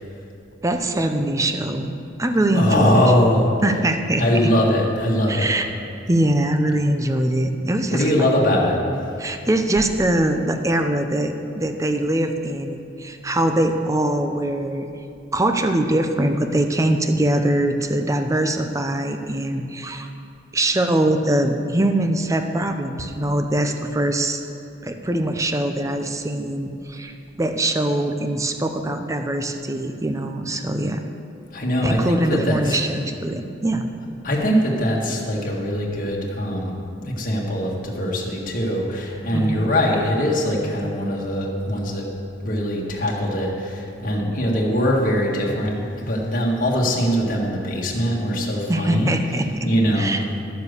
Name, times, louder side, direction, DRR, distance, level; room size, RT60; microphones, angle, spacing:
voice 1, 0.6-3.0 3.6-4.2 5.3-5.7 6.1-8.3 9.2-14.9 15.3-20.1 20.5-24.4 24.8-31.0 31.8-33.8 39.3-39.7 48.7-49.7 50.0-50.2, right 1 dB, 15° right, 6 dB, 0.6 m, -22 dB
voice 2, 2.5-3.5 4.2-5.5 7.9-8.8 31.5-32.8 34.2-36.7 37.0-42.1 42.4-49.1 49.6-50.2, equal, 50° left, -3 dB, 1.8 m, -21 dB
11.5 x 7.3 x 6.6 m, 2.6 s
head